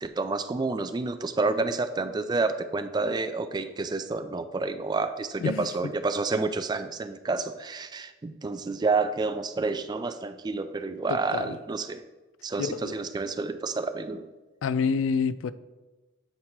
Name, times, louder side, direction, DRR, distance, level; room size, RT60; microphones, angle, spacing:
voice 1, 0.0-12.0 12.4-14.3, right 3 dB, 20° right, 0.3 m, -29 dB
voice 2, 11.1-11.5 12.6-12.9 14.6-15.5, left 5 dB, 90° left, 0.3 m, -27 dB
7.9 x 2.9 x 5.9 m
head